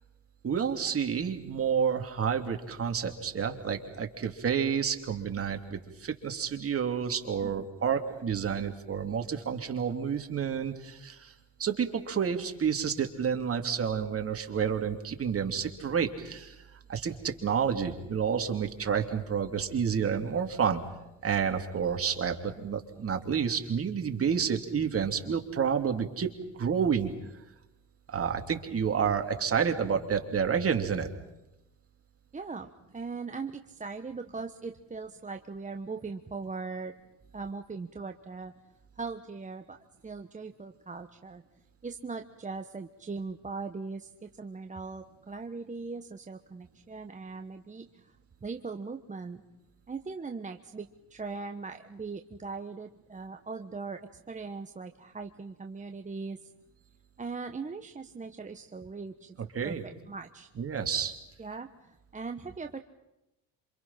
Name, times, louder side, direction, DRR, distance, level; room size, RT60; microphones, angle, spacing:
voice 1, 0.4-11.3 11.6-16.6 16.9-20.8 21.2-26.3 26.6-27.1 28.1-31.1 59.4-59.8 60.6-61.1, right 7 dB, 40° right, 5 dB, 2.9 m, -29 dB
voice 2, 7.4-7.8 32.3-36.9 37.3-38.5 39.0-39.8 40.0-41.4 41.8-48.1 48.4-49.4 49.9-54.0 54.3-56.5 57.2-59.3 59.6-60.5 61.4-62.8, right 4 dB, 20° right, 5 dB, 1.2 m, -40 dB
27.5 x 26.0 x 5.8 m, 0.92 s
supercardioid pair, 75°, 36 cm